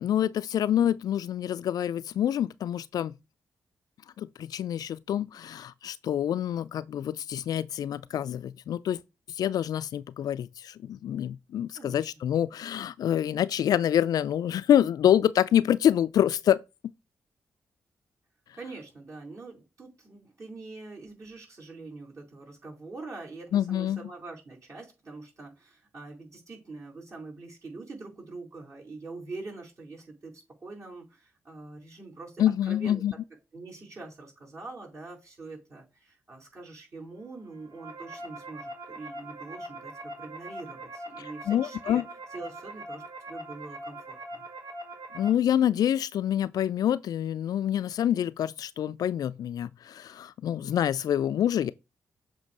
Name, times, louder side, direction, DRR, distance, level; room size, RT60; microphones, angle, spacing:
voice 1, 0.0-3.1 4.2-9.0 9.4-16.6 23.5-24.1 32.4-33.1 41.2-42.0 45.1-51.7, left 10 dB, 65° left, 0.3 m, -26 dB
voice 2, 11.7-12.1 18.5-33.0 33.5-42.0 42.3-44.4, right 3 dB, 45° right, 4.4 m, -44 dB
sound 1, 37.5-45.3, right 1 dB, 65° right, 1.8 m, -42 dB
7.2 x 2.8 x 5.3 m
hypercardioid pair, 40°, 7 cm